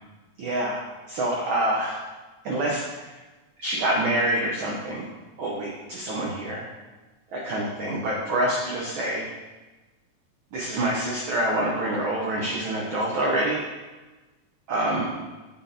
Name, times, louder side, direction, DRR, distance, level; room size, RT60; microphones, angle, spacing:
voice 1, 0.4-0.8 1.1-2.0 2.4-3.1 3.6-5.1 5.4-6.7 7.3-9.2 10.5-13.6 14.7-15.1, right 1 dB, 90° right, -2 dB, 1.1 m, -26 dB
7.8 x 4.2 x 3.7 m, 1.2 s
omnidirectional pair, 3.4 m